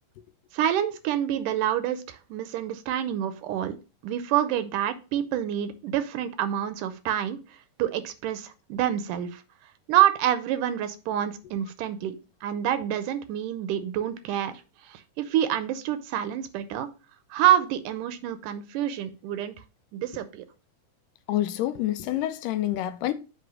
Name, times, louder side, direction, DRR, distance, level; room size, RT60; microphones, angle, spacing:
voice 1, 0.5-3.8 4.0-7.4 7.8-9.4 9.9-14.5 14.8-16.9 17.3-19.5 19.9-20.4, right 11 dB, 80° right, 2.2 m, -27 dB
voice 2, 21.3-23.1, left 14 dB, 90° left, 2.3 m, -27 dB
7.9 x 3.0 x 6.1 m
omnidirectional pair, 3.8 m